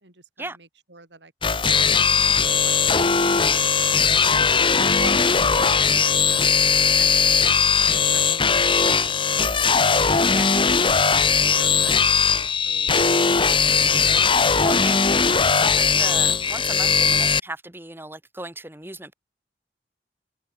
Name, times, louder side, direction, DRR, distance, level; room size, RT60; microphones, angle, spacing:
voice 1, 0.0-6.2 6.9-9.0 9.4-10.6 11.4-13.9, right 3 dB, 90° right, 5.4 m, -44 dB
sound 1, 1.4-17.4, left 5 dB, 30° left, 1.3 m, -19 dB
voice 2, 14.6-15.1 15.6-19.1, right 2 dB, 15° right, 4.1 m, -36 dB
open air
head